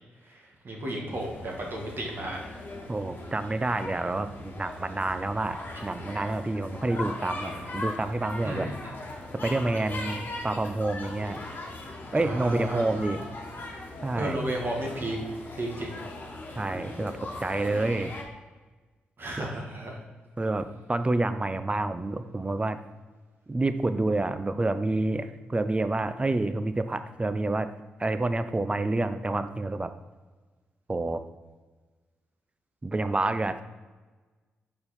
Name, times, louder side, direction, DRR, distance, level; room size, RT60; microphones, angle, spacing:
voice 1, 0.2-2.4 8.4-8.9 12.2-13.0 14.1-15.2 15.5-15.9 19.2-20.0, right 1 dB, 55° right, -1 dB, 1.6 m, -33 dB
sound 1, 1.1-18.2, left 2 dB, 45° left, 1.3 m, -40 dB
voice 2, 2.9-8.7 9.4-11.4 12.1-13.2 14.0-14.4 16.6-18.1 19.4-19.5 20.4-22.8 23.5-27.7 28.0-29.9 30.9-31.2 32.8-33.6, right 2 dB, 25° right, 11 dB, 0.5 m, -28 dB
5.3 x 4.4 x 4.2 m, 1.3 s
hypercardioid pair, 40°, 5 cm